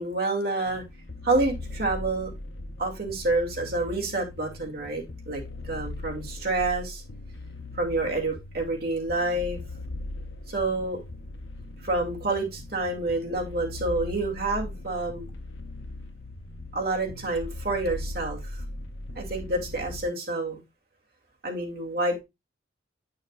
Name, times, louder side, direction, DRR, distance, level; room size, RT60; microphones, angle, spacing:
voice 1, 0.0-0.8 1.2-2.3 2.8-7.0 7.8-9.6 10.5-11.0 11.8-15.3 16.7-18.6 19.2-20.6 21.4-22.2, right 2 dB, 55° right, 2.4 m, -28 dB
sound 1, 0.7-20.0, left 2 dB, 85° left, 0.9 m, -39 dB
9.0 x 6.4 x 2.4 m
head